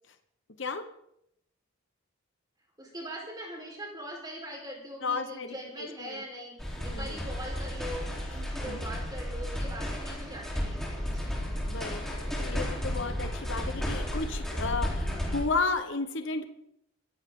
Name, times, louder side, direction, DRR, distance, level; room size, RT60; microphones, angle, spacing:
voice 1, 2.8-11.3, right 1 dB, 20° right, 0 dB, 4.3 m, -42 dB
voice 2, 5.0-6.2 6.8-7.2 8.7-8.9 11.5-16.5, left 4 dB, 55° left, 8 dB, 1.1 m, -33 dB
sound 1, 6.6-15.4, equal, ahead, 3.6 m, -33 dB
24.0 x 15.5 x 3.8 m, 0.78 s
head